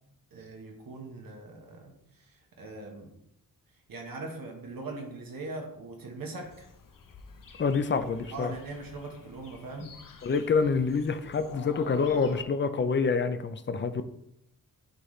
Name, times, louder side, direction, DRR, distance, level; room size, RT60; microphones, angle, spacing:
voice 1, 0.3-3.1 3.9-6.7 8.3-9.9, right 2 dB, 70° right, 1 dB, 1.3 m, -41 dB
sound 1, 6.4-12.4, left 6 dB, 60° left, 0.9 m, -48 dB
voice 2, 7.6-8.5 9.8-9.9 10.2-14.1, left 5 dB, 35° left, 10 dB, 0.5 m, -27 dB
10.5 x 4.0 x 3.2 m, 0.78 s
wide cardioid pair, 170°, 36 cm